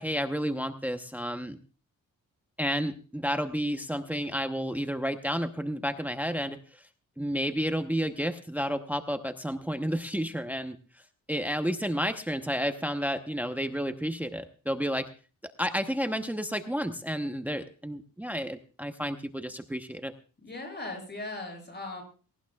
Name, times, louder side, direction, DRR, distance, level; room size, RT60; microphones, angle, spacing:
voice 1, 0.0-1.6 2.6-6.8 7.2-10.8 11.3-15.1 15.4-20.1, equal, 5° right, 8 dB, 0.9 m, -31 dB
voice 2, 20.4-22.0, left 2 dB, 35° left, 3 dB, 7.5 m, -38 dB
18.0 x 18.0 x 2.4 m, 0.36 s
cardioid pair, 95°, 31 cm